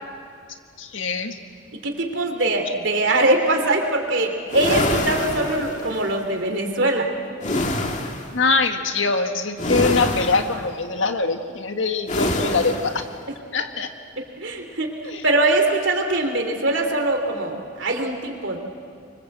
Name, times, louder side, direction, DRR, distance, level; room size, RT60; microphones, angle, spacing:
voice 1, 0.8-1.4 8.3-13.0 13.5-13.9 15.0-15.2, left 3 dB, 80° left, 6 dB, 1.8 m, -23 dB
voice 2, 1.8-7.1 14.2-18.6, right 2 dB, 70° right, 4 dB, 3.3 m, -22 dB
sound 1, 4.5-6.1 7.4-8.4 9.6-10.7 12.1-13.0, left 1 dB, 40° left, 1.9 m, -25 dB
26.0 x 24.0 x 8.0 m, 2.3 s
head